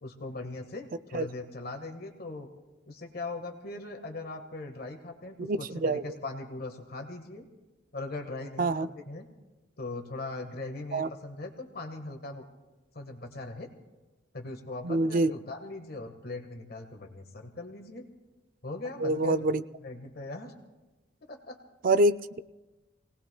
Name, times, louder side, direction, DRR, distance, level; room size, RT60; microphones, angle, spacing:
voice 1, 0.0-2.5 2.9-7.4 7.9-9.3 9.8-12.4 12.9-13.7 14.3-18.1 18.6-19.4 19.8-20.5 21.2-21.6, left 2 dB, 55° left, 4 dB, 1.4 m, -40 dB
voice 2, 5.4-6.0 8.6-8.9 10.9-11.1 14.8-15.3 19.0-19.6 21.8-22.4, right 2 dB, 45° right, 13 dB, 0.4 m, -25 dB
27.0 x 18.5 x 2.2 m, 1.1 s
head